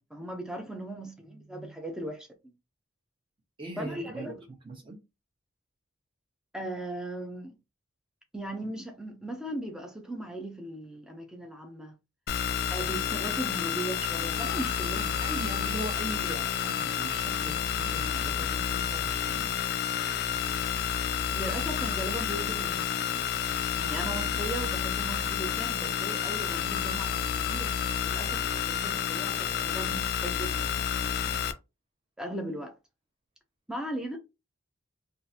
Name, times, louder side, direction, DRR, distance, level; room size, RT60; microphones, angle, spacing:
voice 1, 0.0-2.3 3.8-4.4 6.5-7.5 8.3-12.0 12.7-15.3 21.3-23.3 23.7-31.4 32.2-32.7 33.7-34.2, right 1 dB, 5° right, 0.6 m, -38 dB
voice 2, 3.6-5.0 15.2-19.7, right 2 dB, 25° right, 1.1 m, -40 dB
sound 1, 12.3-31.5, left 8 dB, 50° left, 0.3 m, -30 dB
3.7 x 2.6 x 2.8 m
head